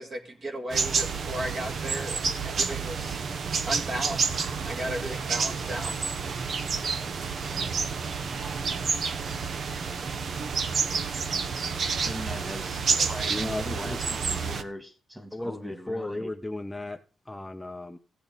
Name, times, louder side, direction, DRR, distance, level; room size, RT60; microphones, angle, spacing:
voice 1, 0.0-3.2 3.7-6.0, right 1 dB, 45° right, 3 dB, 2.2 m, -35 dB
sound 1, 0.7-14.6, right 5 dB, 60° right, 0.9 m, -29 dB
voice 2, 12.0-16.3, equal, 10° right, 5 dB, 2.6 m, -40 dB
voice 3, 13.3-14.1 15.3-18.0, left 1 dB, 10° left, 6 dB, 0.6 m, -35 dB
15.5 x 8.8 x 4.0 m, 0.37 s
cardioid pair, 100°, 0 cm